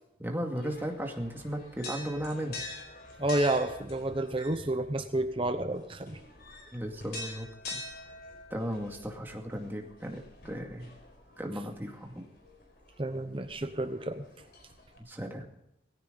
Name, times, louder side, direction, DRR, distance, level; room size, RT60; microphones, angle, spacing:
voice 1, 0.2-2.6 6.7-7.8 8.5-10.9 11.4-12.2 15.0-15.4, equal, 10° right, 2 dB, 2.2 m, -36 dB
sound 1, 0.6-15.0, left 2 dB, 55° left, 4.3 m, -46 dB
voice 2, 3.2-6.2 13.0-14.3, right 1 dB, 30° right, 9 dB, 0.9 m, -30 dB
18.5 x 16.0 x 4.0 m, 0.84 s
head